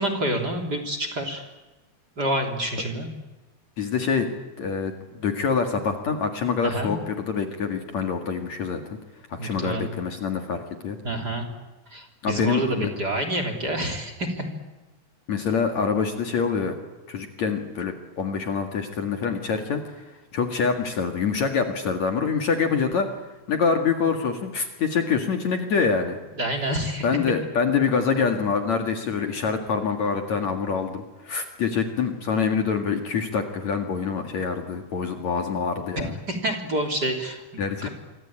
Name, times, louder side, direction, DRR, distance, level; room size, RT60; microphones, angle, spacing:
voice 1, 0.0-1.4 2.2-3.1 6.6-6.9 9.4-9.9 11.0-11.5 11.9-14.4 26.4-27.1 36.0-37.9, right 1 dB, 25° right, 6 dB, 3.5 m, -28 dB
voice 2, 3.8-4.3 4.6-9.0 9.3-11.0 12.2-12.9 15.3-16.7 17.1-20.0 20.3-23.1 23.5-26.2 27.0-36.2 37.6-37.9, left 5 dB, 50° left, 5 dB, 2.9 m, -25 dB
27.0 x 25.0 x 8.8 m, 1.1 s
omnidirectional pair, 4.4 m